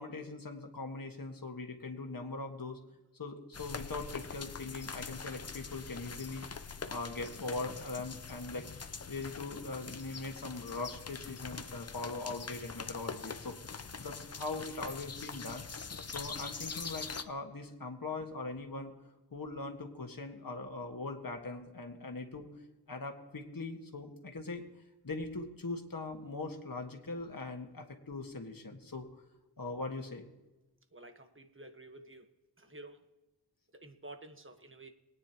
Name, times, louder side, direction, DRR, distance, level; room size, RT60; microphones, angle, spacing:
voice 1, 0.0-2.8 3.2-6.5 6.9-8.7 9.1-15.7 16.1-18.9 19.3-22.5 22.9-24.6 25.0-29.1 29.6-30.3, left 3 dB, 55° left, 3 dB, 1.7 m, -41 dB
sound 1, 3.5-17.2, left 5 dB, 40° left, 0.7 m, -44 dB
voice 2, 30.9-32.3 32.6-33.1 33.7-34.9, right 2 dB, 30° right, 7 dB, 1.3 m, -51 dB
22.0 x 9.7 x 3.0 m, 1.1 s
wide cardioid pair, 70°, 40 cm